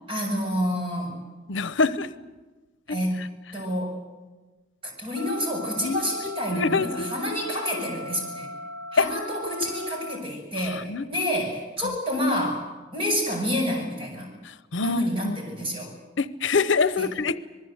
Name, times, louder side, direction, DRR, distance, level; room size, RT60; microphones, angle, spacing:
voice 1, 0.1-1.2 2.9-3.2 3.5-4.0 4.8-8.5 8.9-14.3 14.8-15.9 17.0-17.1, equal, 30° right, 1 dB, 7.0 m, -28 dB
voice 2, 1.5-2.1 2.9-3.0 5.8-6.0 6.5-7.1 9.0-9.1 10.6-11.0 14.4-15.4 16.2-17.4, left 4 dB, 75° left, 15 dB, 0.8 m, -25 dB
sound 1, 5.2-10.2, left 1 dB, 75° right, 1.7 m, -38 dB
26.5 x 20.5 x 8.0 m, 1.2 s
head